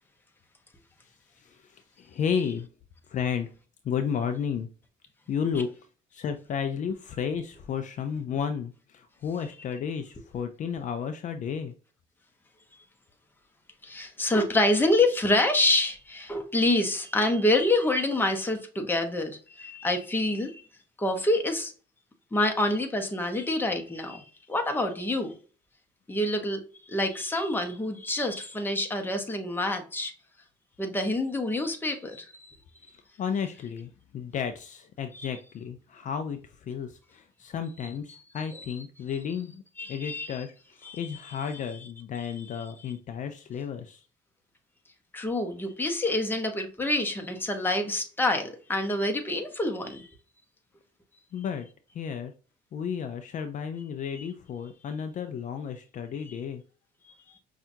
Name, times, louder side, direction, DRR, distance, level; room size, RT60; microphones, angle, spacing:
voice 1, 1.4-2.7 3.1-3.5 3.8-4.7 5.3-5.7 6.1-11.7 33.2-39.6 39.9-44.0 51.3-51.7 51.9-52.3 52.7-56.6, left 7 dB, 50° left, 0.5 m, -33 dB
voice 2, 13.8-20.7 21.0-21.7 22.3-25.4 26.1-30.1 30.8-32.6 35.1-35.3 38.5-38.7 39.8-40.4 40.8-41.7 42.2-42.9 45.1-50.1 54.2-54.3 56.3-56.4, left 1 dB, 10° left, 0.9 m, -27 dB
5.6 x 2.4 x 2.6 m
cardioid pair, 110°, 17 cm